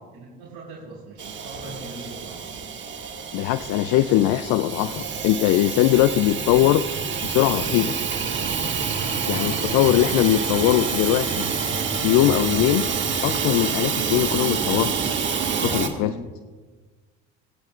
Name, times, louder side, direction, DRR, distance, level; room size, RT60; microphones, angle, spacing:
voice 1, 0.1-2.5 9.3-9.7 14.0-14.2 15.9-16.3, right 3 dB, 75° right, -6 dB, 3.8 m, -40 dB
Hiss / Toilet flush / Trickle dribble, 1.2-15.9, right 6 dB, 35° right, 1.7 m, -27 dB
voice 2, 3.3-6.8 7.2-8.0 9.3-11.5 11.9-12.8 13.2-14.9 15.6-16.1, left 14 dB, 65° left, 13 dB, 0.5 m, -21 dB
21.5 x 9.7 x 2.4 m, 1.4 s
hypercardioid pair, 70°, 31 cm